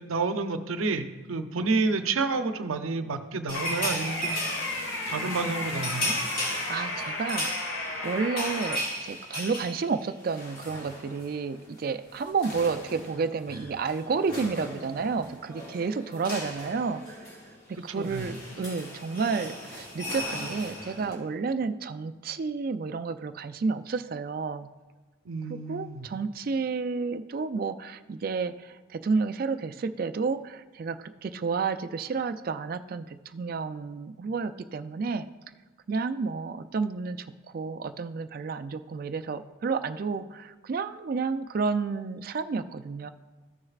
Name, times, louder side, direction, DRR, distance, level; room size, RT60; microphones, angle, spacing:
voice 1, 0.0-4.4 5.1-6.1 18.0-18.3 25.3-26.1, right 3 dB, 90° right, 9 dB, 0.6 m, -29 dB
pickslide down in a phone, 3.5-8.8, left 2 dB, 70° left, 1.3 m, -34 dB
sound 1, 3.5-11.4 11.6-11.8 12.1-21.1, left 1 dB, 45° left, 2.5 m, -37 dB
voice 2, 6.4-17.4 17.7-24.7 25.5-35.3 35.9-37.3 37.5-43.1, right 4 dB, 45° right, 11 dB, 0.3 m, -31 dB
14.5 x 6.4 x 2.4 m, 1.2 s
head